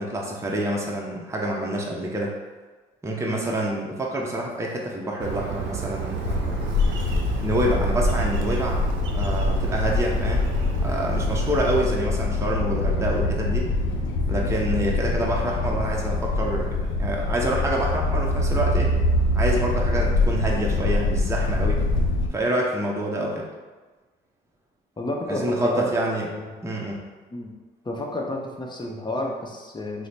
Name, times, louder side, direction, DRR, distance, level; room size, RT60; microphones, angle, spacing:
voice 1, 0.0-2.3 3.0-6.8 7.4-8.8 9.1-10.5 10.8-13.7 14.3-18.9 19.3-21.8 22.3-23.5 25.3-26.3 26.6-27.0, right 1 dB, 15° right, -2 dB, 0.7 m, -27 dB
Bird, 5.2-11.7, right 4 dB, 70° right, 0.6 m, -30 dB
sound 1, 6.2-22.3, left 2 dB, 70° left, 0.5 m, -24 dB
voice 2, 25.0-25.9 26.2-26.5 27.3-27.5 27.8-30.1, left 1 dB, 20° left, 0 dB, 0.7 m, -31 dB
3.1 x 2.0 x 4.1 m, 1.3 s
supercardioid pair, 55°, 21 cm